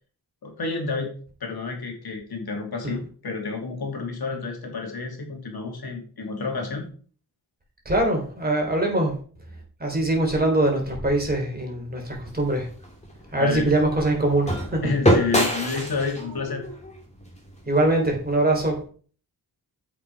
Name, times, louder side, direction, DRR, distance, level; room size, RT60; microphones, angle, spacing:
voice 1, 0.4-1.1 1.4-6.8 13.4-13.7 14.8-16.6, left 4 dB, 70° left, 2.7 m, -29 dB
voice 2, 7.9-9.2 9.8-12.7 13.3-14.9 17.7-18.8, right 1 dB, 25° right, 3.7 m, -23 dB
sound 1, 12.2-18.4, equal, 15° left, 2.5 m, -27 dB
8.0 x 5.9 x 4.8 m
cardioid pair, 75°, 39 cm